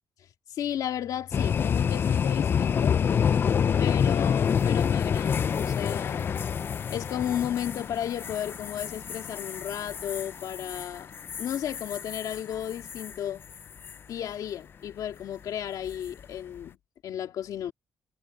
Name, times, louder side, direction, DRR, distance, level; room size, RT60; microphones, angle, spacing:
voice 1, 0.5-3.0 3.8-6.3 6.9-11.1 11.4-13.4 14.1-16.8 17.0-17.7, left 10 dB, 70° left, 2.2 m, -34 dB
sound 1, 1.3-13.2 13.5-13.9 15.9-16.2, left 7 dB, 35° left, 0.4 m, -27 dB
cardioid pair, 170°, 6 cm